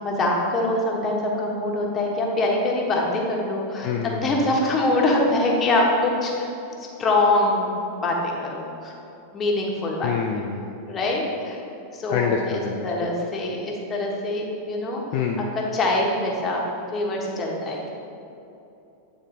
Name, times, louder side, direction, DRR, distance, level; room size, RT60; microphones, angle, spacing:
voice 1, 0.0-6.5 7.0-7.7 8.0-8.9 9.3-10.1 10.9-11.6 11.9-15.0 15.7-16.6 16.9-17.8, left 2 dB, 25° left, -1 dB, 1.2 m, -24 dB
voice 2, 3.8-4.5 10.0-10.7 12.1-13.1 15.1-15.5, left 6 dB, 45° left, 1 dB, 0.4 m, -27 dB
8.9 x 3.9 x 3.9 m, 2.8 s
figure-of-eight pair, 90°, 0 cm